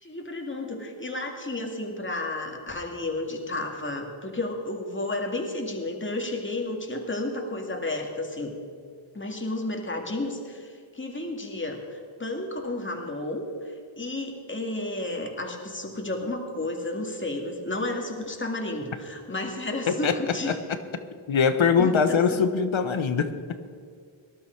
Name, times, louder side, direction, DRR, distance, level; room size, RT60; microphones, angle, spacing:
voice 1, 0.0-8.5 9.1-20.5 21.8-22.4, left 2 dB, 25° left, 2 dB, 2.2 m, -32 dB
voice 2, 19.9-20.6 21.3-23.3, left 6 dB, 70° left, 9 dB, 1.2 m, -22 dB
19.0 x 11.5 x 4.7 m, 2.1 s
wide cardioid pair, 65°, 49 cm